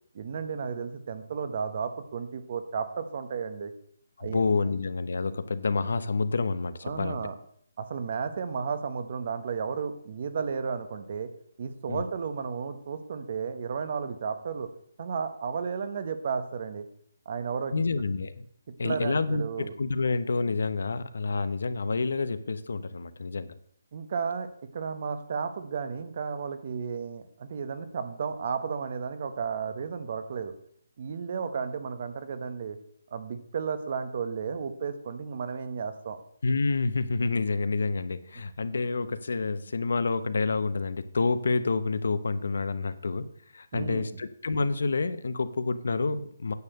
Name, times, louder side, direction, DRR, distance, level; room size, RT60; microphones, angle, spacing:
voice 1, 0.1-3.7 4.2-4.7 6.8-7.3 7.8-11.3 11.6-14.7 15.0-16.8 17.2-17.7 18.8-19.7 23.9-30.5 31.0-32.8 33.1-36.2 43.7-44.2, right 6 dB, 35° right, 10 dB, 1.0 m, -33 dB
voice 2, 4.2-7.3 11.9-12.0 17.7-18.4 18.8-23.6 36.4-43.3 43.5-46.5, left 4 dB, 70° left, 13 dB, 0.8 m, -28 dB
9.6 x 6.6 x 6.6 m, 0.64 s
hypercardioid pair, 175°, 0 cm